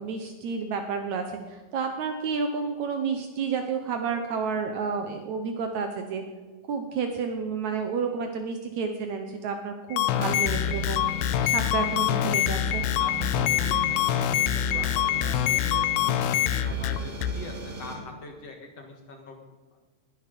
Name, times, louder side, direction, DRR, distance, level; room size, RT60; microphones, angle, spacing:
voice 1, 0.0-6.2 6.7-11.0 11.4-12.8, right 5 dB, 90° right, 5 dB, 1.6 m, -30 dB
sound 1, 9.9-17.3, left 11 dB, 85° left, 2.2 m, -25 dB
sound 2, 10.1-17.9, left 1 dB, 60° right, 5.2 m, -36 dB
voice 2, 13.0-14.2 14.5-15.9 16.2-19.4, left 3 dB, 55° left, 3 dB, 1.8 m, -43 dB
20.5 x 11.5 x 5.3 m, 1.3 s
omnidirectional pair, 5.0 m